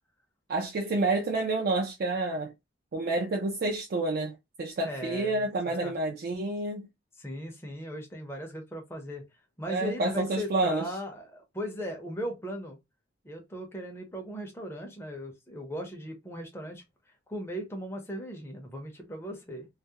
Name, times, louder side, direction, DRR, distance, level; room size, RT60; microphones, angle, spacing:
voice 1, 0.5-2.5 2.9-6.9 9.7-10.9, right 2 dB, 50° right, 0.4 m, -29 dB
voice 2, 4.8-5.9 7.2-9.2 9.6-12.8 13.2-16.8 17.3-19.7, equal, 15° left, 0.6 m, -38 dB
2.3 x 2.0 x 2.7 m
head